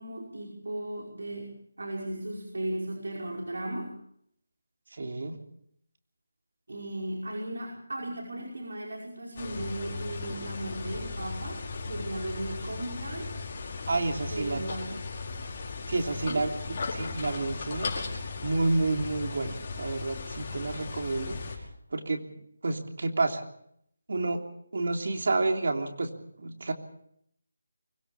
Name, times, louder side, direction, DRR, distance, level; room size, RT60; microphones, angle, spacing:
voice 1, 0.0-4.0 6.7-13.3 14.3-15.0 16.2-16.5, right 1 dB, 80° right, -2 dB, 5.4 m, -36 dB
voice 2, 4.9-5.4 13.9-14.6 15.9-21.4 21.9-22.3 22.6-23.4 24.1-24.5 24.7-26.7, right 2 dB, 55° right, 3 dB, 3.3 m, -30 dB
sound 1, 9.4-21.6, left 4 dB, 30° left, 5.3 m, -37 dB
24.5 x 17.5 x 7.2 m, 0.71 s
figure-of-eight pair, 175°, 0 cm